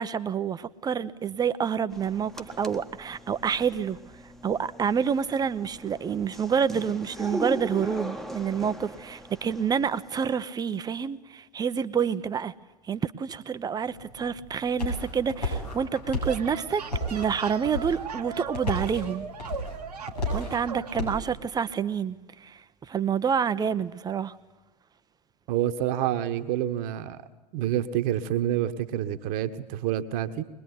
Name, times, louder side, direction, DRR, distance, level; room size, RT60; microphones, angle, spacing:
voice 1, 0.0-4.0 4.4-12.5 12.9-16.8 17.1-19.3 20.3-24.3, right 7 dB, 20° right, 14 dB, 0.9 m, -28 dB
sound 1, 1.9-10.3, equal, ahead, 1.5 m, -40 dB
sound 2, 13.9-21.3, left 1 dB, 80° left, 7.7 m, -33 dB
sound 3, 16.0-21.0, right 6 dB, 75° right, 1.5 m, -39 dB
voice 2, 25.5-27.2 27.5-30.4, right 11 dB, 45° right, 9 dB, 1.4 m, -28 dB
22.5 x 21.0 x 9.8 m, 1.1 s
figure-of-eight pair, 90°, 20 cm